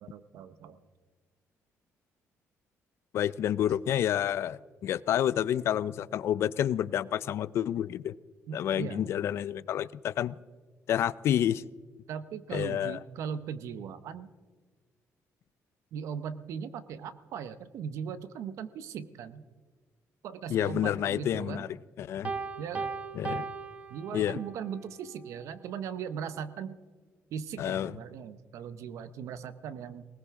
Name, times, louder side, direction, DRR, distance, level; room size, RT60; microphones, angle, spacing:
voice 1, 0.0-0.8 8.5-9.1 12.1-14.3 15.9-19.4 20.2-21.6 22.6-22.9 23.9-26.8 27.3-30.1, right 7 dB, 70° right, 13 dB, 0.9 m, -39 dB
voice 2, 3.1-8.1 8.5-10.4 10.9-11.6 12.5-13.0 20.5-21.7 22.0-22.3 23.2-23.5 24.1-24.4 27.6-27.9, left 10 dB, 55° left, 18 dB, 0.4 m, -29 dB
Piano, 22.2-24.6, right 4 dB, 25° right, 0.9 m, -37 dB
20.0 x 19.0 x 3.7 m, 1.4 s
cardioid pair, 170°, 5 cm